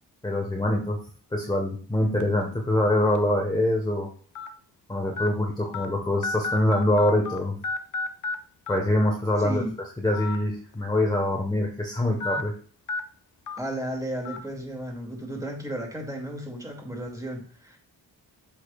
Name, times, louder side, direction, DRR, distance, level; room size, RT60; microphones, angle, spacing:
voice 1, 0.2-1.0 1.3-4.1 4.9-7.5 8.7-9.6 10.0-12.5, left 1 dB, 10° left, 0 dB, 1.3 m, -24 dB
sound 1, 2.2-2.4 3.1-3.2 4.4-4.5 5.2-5.3 5.7-5.9 6.2-7.4 7.6-8.4 8.7-8.8 10.1-10.4 10.7-10.8 12.2-12.4 12.9-13.0 13.5-13.6 14.3-14.4, left 3 dB, 45° left, 0.8 m, -31 dB
voice 2, 9.4-9.7 13.6-17.8, right 1 dB, 10° right, 0 dB, 2.4 m, -34 dB
8.1 x 4.8 x 2.4 m, 0.42 s
cardioid pair, 65°, 43 cm